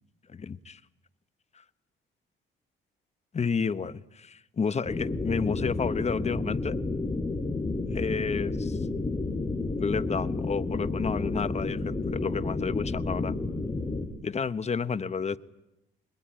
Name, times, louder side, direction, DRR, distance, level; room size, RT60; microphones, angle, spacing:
voice 1, 0.3-0.8 3.3-6.8 7.9-8.8 9.8-13.4 14.2-15.4, left 5 dB, 35° left, 14 dB, 1.1 m, -31 dB
sound 1, 4.9-14.0, left 3 dB, 15° left, 6.1 m, -31 dB
26.0 x 21.0 x 9.1 m, 0.87 s
cardioid pair, 90°, 20 cm